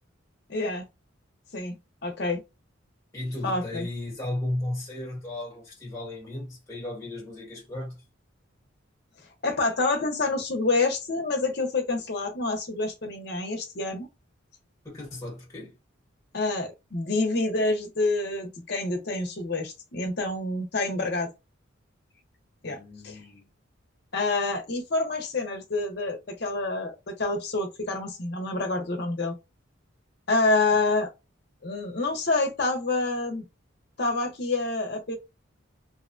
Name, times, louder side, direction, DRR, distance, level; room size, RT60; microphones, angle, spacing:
voice 1, 0.5-0.8 1.5-1.7 2.0-2.4 3.4-3.9 9.4-14.1 16.3-21.3 22.6-22.8 23.0-23.2 24.1-29.3 30.3-31.1 31.6-33.5 34.0-35.2, left 3 dB, 55° left, 0.8 m, -27 dB
voice 2, 3.1-8.0 14.8-15.8 22.6-23.5, left 1 dB, 15° left, 1.2 m, -35 dB
2.7 x 2.2 x 2.5 m
head